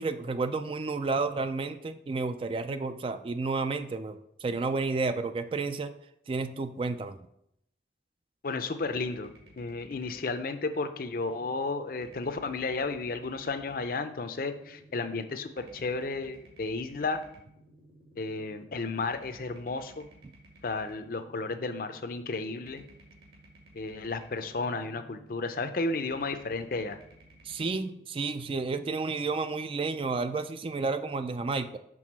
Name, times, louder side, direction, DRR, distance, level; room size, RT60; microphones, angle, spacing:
voice 1, 0.0-5.9 6.3-7.2 27.4-31.8, right 3 dB, 30° right, 10 dB, 0.3 m, -31 dB
voice 2, 8.4-9.3 9.6-17.2 18.2-20.1 20.6-22.8 23.7-27.0, left 3 dB, 55° left, 9 dB, 0.5 m, -33 dB
sound 1, 8.8-28.0, right 1 dB, 65° right, 2.1 m, -56 dB
6.2 x 3.6 x 6.1 m, 0.76 s
head